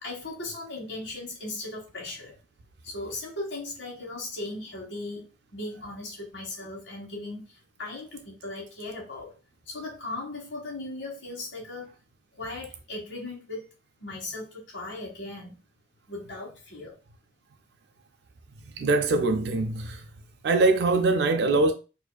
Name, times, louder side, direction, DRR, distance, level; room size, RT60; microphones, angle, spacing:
voice 1, 0.0-2.3 2.8-9.3 9.7-11.9 12.4-13.6 14.0-15.6 16.1-16.9, left 2 dB, 85° left, 1.2 m, -37 dB
voice 2, 18.8-20.0 20.4-21.7, right 3 dB, 60° right, 0.3 m, -22 dB
4.7 x 2.6 x 2.2 m
head